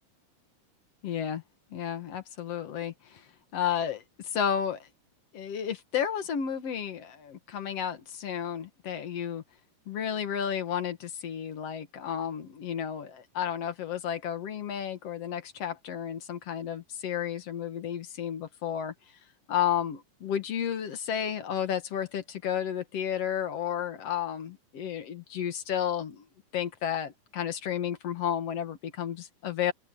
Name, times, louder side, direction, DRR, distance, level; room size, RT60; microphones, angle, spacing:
voice 1, 1.0-1.4 1.7-4.9 5.3-9.4 9.9-18.9 19.5-26.2 26.5-29.7, left 9 dB, 55° left, 2.2 m, -32 dB
open air
omnidirectional pair, 4.1 m